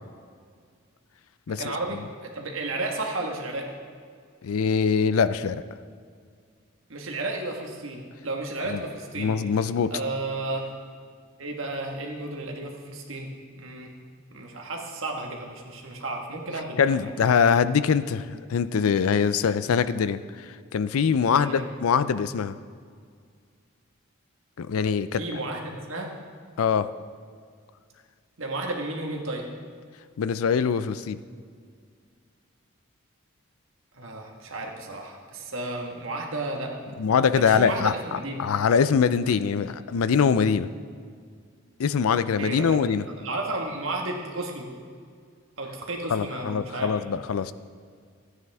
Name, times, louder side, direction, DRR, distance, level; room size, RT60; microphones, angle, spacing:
voice 1, 1.5-3.7 6.9-9.3 9.9-10.7 11.4-13.3 13.5-13.9 14.3-17.4 21.2-21.7 25.1-26.1 28.4-29.4 33.9-36.7 37.1-37.2 37.5-38.5 42.4-44.7 45.6-46.9, right 2 dB, 70° right, 1 dB, 1.5 m, -33 dB
voice 2, 4.4-5.6 8.7-8.8 9.2-9.9 16.8-20.2 20.7-22.6 24.6-25.2 26.6-26.9 30.2-31.2 37.0-40.7 41.8-43.1 46.1-47.5, left 6 dB, 85° left, 14 dB, 0.4 m, -23 dB
13.5 x 9.4 x 3.5 m, 2.1 s
head